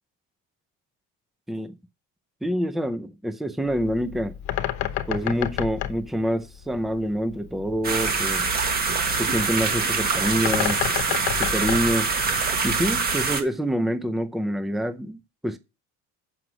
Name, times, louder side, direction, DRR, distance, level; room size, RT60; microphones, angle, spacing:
voice 1, 2.4-4.4 5.1-8.5 9.2-10.8 11.3-12.1 12.6-15.6, equal, ahead, 0.5 m, -26 dB
Bird, 3.6-12.8, left 12 dB, 60° left, 1.0 m, -32 dB
sound 1, 7.8-13.4, right 4 dB, 30° right, 1.5 m, -24 dB
7.9 x 6.2 x 6.1 m
cardioid pair, 155°, 33 cm